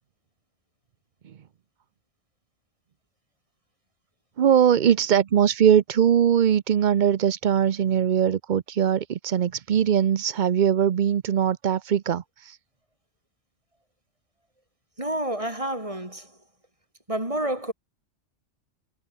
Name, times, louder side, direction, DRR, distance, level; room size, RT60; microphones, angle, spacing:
voice 1, 4.4-12.6, right 9 dB, 50° right, 0.6 m, -21 dB
voice 2, 15.0-16.4 17.1-17.7, right 1 dB, 25° right, 5.0 m, -29 dB
omnidirectional pair, 1.3 m